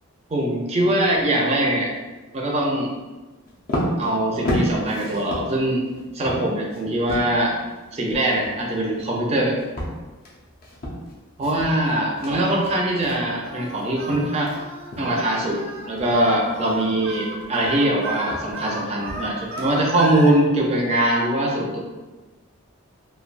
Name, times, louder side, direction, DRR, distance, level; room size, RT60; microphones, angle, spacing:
voice 1, 0.3-1.9 2.3-2.9 4.0-5.8 6.1-7.6 7.9-9.6 11.4-14.5 15.0-21.8, right 1 dB, 30° right, -1 dB, 0.4 m, -22 dB
sound 1, 3.5-14.6 14.9-15.3 15.7-20.0, equal, 45° left, 0.6 m, -32 dB
Singing, 13.4-20.3, right 2 dB, 80° right, 0.9 m, -33 dB
3.2 x 2.2 x 2.4 m, 1.2 s
head